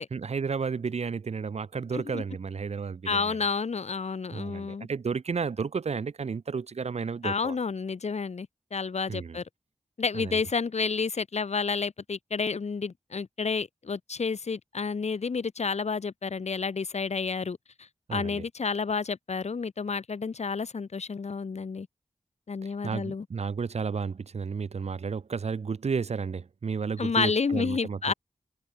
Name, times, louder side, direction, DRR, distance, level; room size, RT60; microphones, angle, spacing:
voice 1, 0.1-3.4 4.3-7.6 9.1-9.4 10.1-10.4 18.1-18.4 22.6-28.1, right 5 dB, 65° right, 0.7 m, -32 dB
voice 2, 3.0-4.9 7.2-9.4 10.0-21.9 22.5-23.2 27.0-28.1, left 5 dB, 70° left, 1.3 m, -30 dB
cardioid pair, 50°, 12 cm